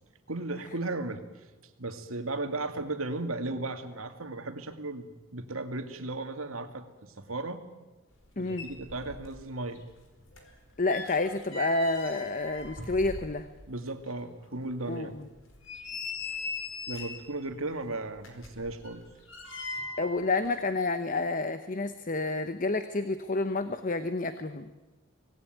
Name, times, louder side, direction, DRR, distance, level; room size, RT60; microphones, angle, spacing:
voice 1, 0.3-1.2 1.8-7.7 8.4-9.8 13.7-15.2 16.9-19.1, right 2 dB, 80° right, 7 dB, 2.3 m, -36 dB
sound 1, 8.2-8.3 8.5-9.5 9.8-13.7 14.1-14.2 14.7-14.8 15.4-17.3 18.2-20.2 20.4-20.6, left 2 dB, 65° left, 4.7 m, -40 dB
voice 2, 8.4-8.7 10.8-13.5 14.9-15.1 20.0-24.7, left 3 dB, 40° left, 10 dB, 1.0 m, -29 dB
25.5 x 19.0 x 9.3 m, 1.2 s
head